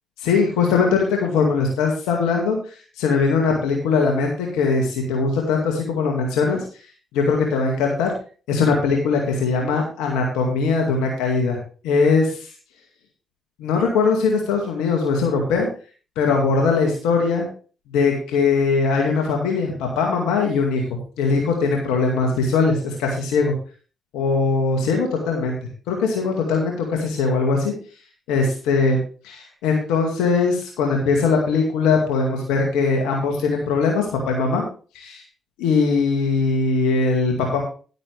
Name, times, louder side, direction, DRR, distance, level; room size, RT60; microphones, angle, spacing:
voice 1, 0.2-2.6 3.0-6.6 7.1-8.1 8.5-11.6 11.8-12.5 13.6-15.7 16.2-17.5 17.9-20.8 21.2-23.5 24.1-25.6 25.9-27.7 28.3-29.0 29.2-34.7 34.9-35.2 35.6-37.6, left 4 dB, 90° left, 1 dB, 2.1 m, -20 dB
11.0 x 9.1 x 3.4 m, 0.37 s
supercardioid pair, 50°, 0 cm